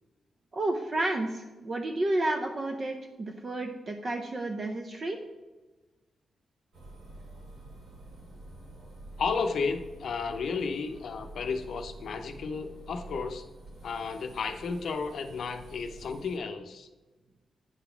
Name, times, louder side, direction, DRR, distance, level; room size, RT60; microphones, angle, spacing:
voice 1, 0.5-5.2, right 2 dB, 30° right, 3 dB, 0.5 m, -31 dB
sound 1, 6.7-16.4, right 2 dB, 65° right, 2.2 m, -48 dB
voice 2, 9.2-13.4 13.8-16.9, left 5 dB, 60° left, 6 dB, 0.6 m, -33 dB
9.4 x 4.0 x 5.7 m, 1.2 s
wide cardioid pair, 160°, 0 cm